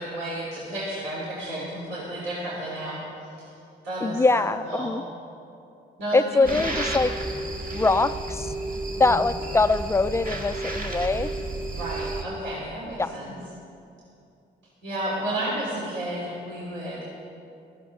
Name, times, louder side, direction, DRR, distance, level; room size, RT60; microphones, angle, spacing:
voice 1, 0.0-3.0 3.4-3.5 3.8-4.9 6.0-6.6 9.1-9.2 11.7-13.3 14.8-17.0, right 1 dB, 70° right, -7 dB, 3.4 m, -32 dB
voice 2, 4.0-5.0 6.1-7.1 7.7-8.5 9.0-11.3 13.0-13.1, left 3 dB, 15° left, 13 dB, 0.4 m, -23 dB
sound 1, 6.4-12.2, right 2 dB, 45° right, 1.9 m, -31 dB
15.5 x 14.0 x 3.6 m, 2.6 s
cardioid pair, 90°, 20 cm